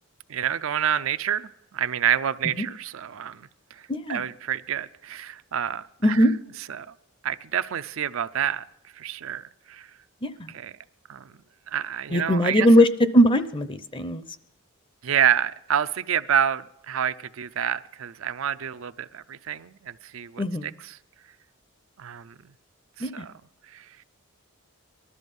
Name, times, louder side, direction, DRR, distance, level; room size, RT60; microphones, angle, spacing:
voice 1, 0.3-3.8 4.1-6.2 6.7-6.9 7.2-8.6 9.0-9.9 10.5-10.7 11.1-11.4 11.7-12.7 15.0-20.4 22.0-22.4 23.0-23.3 23.7-23.9, right 9 dB, 70° right, 13 dB, 0.5 m, -28 dB
voice 2, 3.9-4.2 6.0-6.3 10.2-10.5 12.1-12.9 13.1-14.2 20.4-20.7 23.0-23.2, equal, 25° left, 12 dB, 0.6 m, -20 dB
19.0 x 12.5 x 5.4 m, 0.83 s
head